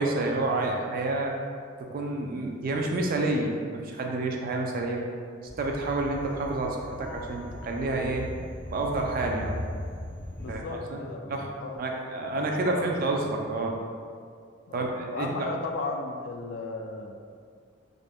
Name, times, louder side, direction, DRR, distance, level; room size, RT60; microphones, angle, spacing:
voice 1, 0.0-1.3 1.9-5.0 5.6-8.2 8.7-9.5 10.5-10.6 10.9-11.0 11.3-11.5 11.8-13.8 14.7-15.3, right 2 dB, 50° right, 1 dB, 0.3 m, -29 dB
sound 1, 5.5-10.6, left 1 dB, 10° left, 0.5 m, -38 dB
voice 2, 10.4-12.1 12.4-12.9 13.4-13.7 14.7-17.2, left 2 dB, 65° left, 3 dB, 0.3 m, -36 dB
2.5 x 2.1 x 3.3 m, 2.2 s
head